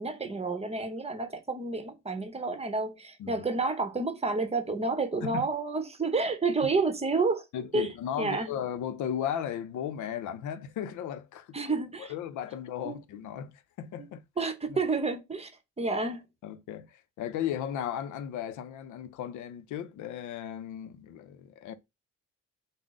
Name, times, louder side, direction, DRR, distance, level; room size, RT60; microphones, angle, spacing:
voice 1, 0.0-7.4 7.7-8.5 11.5-12.1 12.8-13.0 14.0-14.1 14.4-15.5 15.8-16.2, right 3 dB, 20° right, 0.8 m, -30 dB
voice 2, 7.5-11.6 12.0-14.2 16.4-21.7, left 9 dB, 75° left, 0.6 m, -36 dB
3.6 x 2.0 x 3.7 m
cardioid pair, 90°, 30 cm